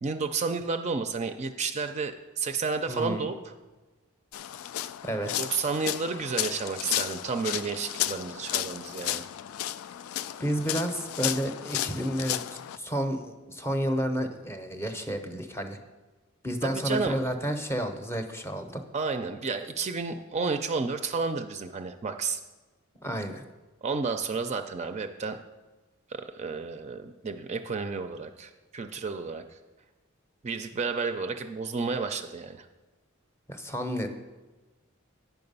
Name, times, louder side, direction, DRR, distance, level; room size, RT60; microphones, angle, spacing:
voice 1, 0.0-3.5 5.4-9.2 16.6-17.1 18.9-22.4 23.8-25.4 26.1-29.6 30.4-32.7, right 4 dB, 35° right, 7 dB, 0.4 m, -31 dB
voice 2, 2.9-3.3 5.0-5.5 10.4-15.8 16.4-18.8 23.0-23.4 33.5-34.1, equal, 10° left, 6 dB, 0.7 m, -31 dB
sound 1, 4.3-12.8, left 12 dB, 90° left, 0.3 m, -33 dB
9.2 x 5.8 x 5.4 m, 1.2 s
head